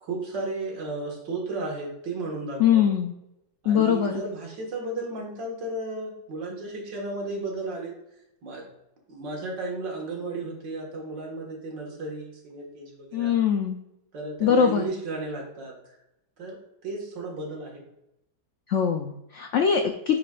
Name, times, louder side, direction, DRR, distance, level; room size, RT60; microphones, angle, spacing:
voice 1, 0.0-2.9 3.6-7.9 8.4-8.7 9.1-13.4 14.1-15.8 16.4-17.8, right 2 dB, 85° right, -1 dB, 2.4 m, -34 dB
voice 2, 2.6-3.1 3.7-4.2 13.1-13.8 14.4-14.8 18.7-20.2, left 8 dB, 80° left, 4 dB, 0.6 m, -22 dB
9.0 x 4.2 x 2.4 m, 0.85 s
omnidirectional pair, 1.9 m